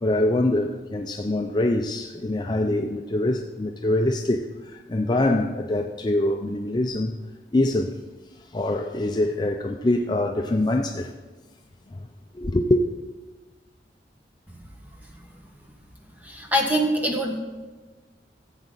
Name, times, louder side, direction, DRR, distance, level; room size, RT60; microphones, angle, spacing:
voice 1, 0.0-7.2 7.5-7.9 8.5-11.1 11.9-12.0 12.3-12.8, left 1 dB, 25° left, 0.5 m, -24 dB
voice 2, 16.2-17.4, equal, 10° right, 1.4 m, -23 dB
15.0 x 8.1 x 3.9 m
head